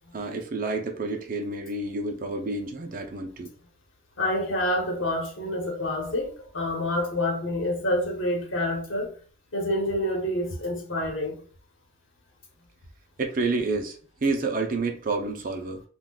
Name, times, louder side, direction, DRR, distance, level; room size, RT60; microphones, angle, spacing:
voice 1, 0.1-3.5 13.2-15.8, right 3 dB, 45° right, 0.5 m, -29 dB
voice 2, 4.2-9.1 9.5-11.4, left 1 dB, 75° left, 1.0 m, -27 dB
3.7 x 2.3 x 2.3 m
head